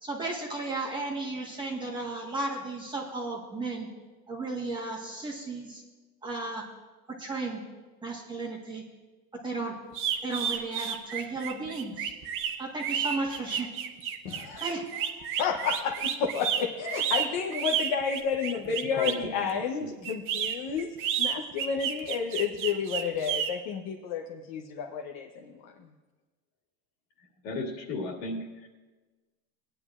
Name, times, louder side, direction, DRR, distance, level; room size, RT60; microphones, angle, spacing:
voice 1, 0.0-3.9 4.3-5.8 6.2-6.7 7.1-7.6 8.0-8.8 9.3-9.7 10.2-12.1 12.6-13.7 14.6-14.9, right 3 dB, 10° right, -2 dB, 1.4 m, -34 dB
sound 1, 9.9-19.3 20.0-23.5, right 9 dB, 25° right, 0.6 m, -31 dB
voice 2, 14.2-14.8 15.4-25.6, left 6 dB, 40° left, 2 dB, 0.9 m, -31 dB
voice 3, 18.6-20.1 27.4-28.7, left 2 dB, 70° left, 1 dB, 2.5 m, -36 dB
19.5 x 10.0 x 2.5 m, 1.2 s
supercardioid pair, 155°, 49 cm